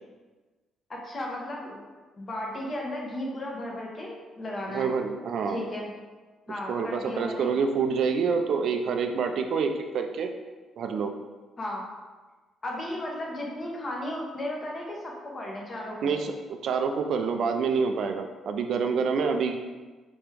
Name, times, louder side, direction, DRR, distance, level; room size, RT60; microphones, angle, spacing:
voice 1, 0.9-1.8 2.2-4.9 5.5-5.9 6.5-7.5 11.6-11.8 12.6-16.1, left 1 dB, 35° left, -2 dB, 1.0 m, -35 dB
voice 2, 4.7-5.6 6.7-10.3 10.8-11.1 16.0-16.3 16.6-19.6, right 5 dB, 70° right, 5 dB, 0.3 m, -27 dB
3.5 x 3.0 x 3.3 m, 1.3 s
cardioid pair, 90°, 0 cm